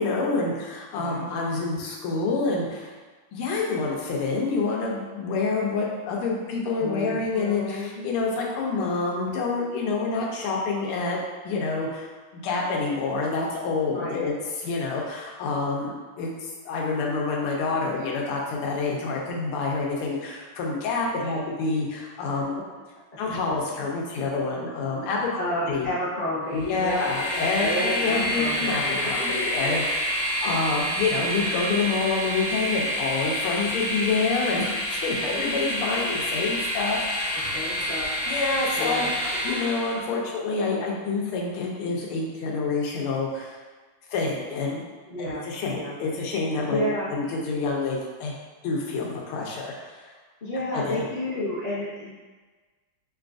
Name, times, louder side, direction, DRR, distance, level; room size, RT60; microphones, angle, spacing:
voice 1, 0.0-2.9 3.3-11.2 11.4-12.1 12.3-22.6 23.2-25.3 25.7-25.9 26.5-37.5 38.3-43.6 44.1-44.8 45.2-48.3 48.6-49.9 50.7-51.0, left 4 dB, 90° left, -2 dB, 1.6 m, -27 dB
voice 2, 0.9-1.3 6.8-8.0 13.9-14.2 21.2-21.3 25.3-27.1 27.6-28.8 35.1-35.4 37.5-38.1 38.8-39.1 45.1-45.4 45.7-45.9 46.7-47.1 50.4-52.1, left 1 dB, 60° left, -10 dB, 0.4 m, -31 dB
Train, 26.6-40.1, equal, 45° left, 1.4 m, -28 dB
5.3 x 2.3 x 2.5 m, 1.3 s
omnidirectional pair, 2.4 m